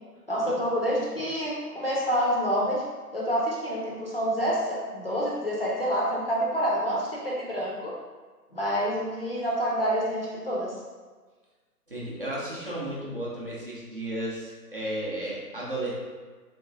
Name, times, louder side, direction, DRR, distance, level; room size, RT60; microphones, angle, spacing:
voice 1, 0.3-2.8 3.1-7.9 8.5-10.7, equal, 40° left, -5 dB, 0.5 m, -27 dB
voice 2, 11.9-15.9, right 1 dB, 35° right, -6 dB, 0.6 m, -33 dB
3.2 x 2.9 x 2.4 m, 1.4 s
figure-of-eight pair, 140°, 48 cm